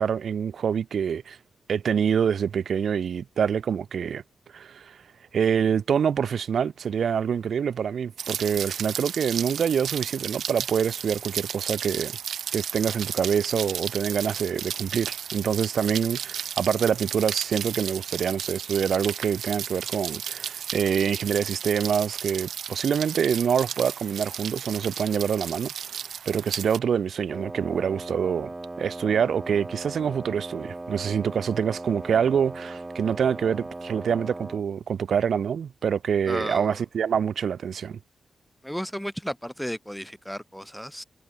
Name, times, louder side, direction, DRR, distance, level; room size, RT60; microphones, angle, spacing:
voice 1, 0.0-1.4 1.7-4.2 4.5-5.0 5.3-12.2 12.5-28.5 28.8-38.0, right 7 dB, 65° right, 0.5 m, -26 dB
Rain, 8.2-26.8, right 8 dB, 90° right, 2.0 m, -34 dB
Wind instrument woodwind instrument, 27.3-34.7, right 2 dB, 20° right, 1.1 m, -38 dB
voice 2, 36.2-36.8 38.6-41.0, equal, ahead, 2.0 m, -33 dB
wide cardioid pair, 145°, 0 cm